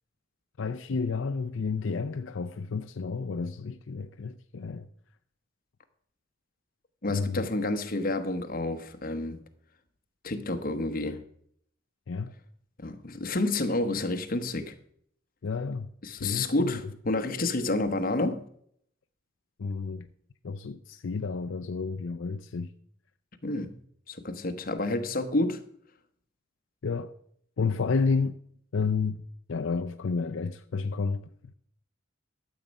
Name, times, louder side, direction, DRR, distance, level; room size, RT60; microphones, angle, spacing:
voice 1, 0.6-4.9 7.1-7.5 12.1-12.3 15.4-15.9 16.2-16.9 19.6-20.1 20.4-22.7 26.8-27.1 27.6-28.4 28.7-29.2 29.5-31.3, left 4 dB, 70° left, 0.5 m, -31 dB
voice 2, 7.0-9.4 10.2-11.2 12.8-14.7 16.0-18.4 23.4-23.7 24.1-25.6, left 2 dB, 45° left, 1.1 m, -29 dB
12.5 x 7.3 x 5.3 m
head